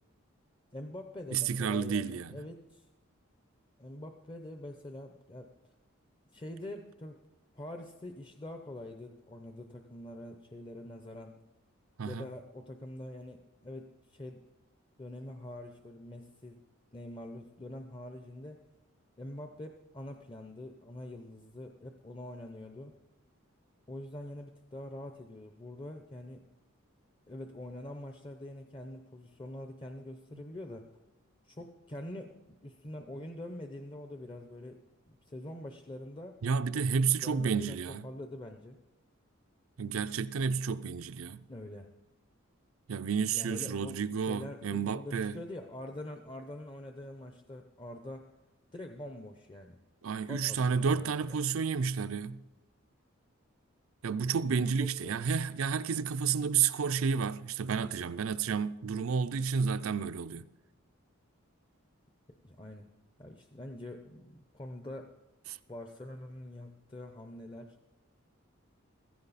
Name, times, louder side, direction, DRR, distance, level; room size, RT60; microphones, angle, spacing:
voice 1, 0.7-2.9 3.8-5.5 6.3-7.2 7.5-11.4 12.0-14.4 15.0-16.6 16.9-18.6 19.2-22.9 23.9-26.4 27.3-30.9 31.4-34.8 35.1-36.4 36.7-37.8 38.0-38.8 41.5-41.9 43.3-48.3 48.7-49.8 50.2-51.3 54.5-55.2 62.4-62.9 63.2-65.1 65.7-67.8, left 1 dB, 25° left, 0.6 m, -45 dB
voice 2, 1.3-2.3 12.0-12.3 36.4-38.0 39.8-41.4 42.9-45.4 50.0-52.4 54.0-60.5, right 6 dB, 80° right, 0.5 m, -31 dB
15.5 x 15.0 x 4.1 m
head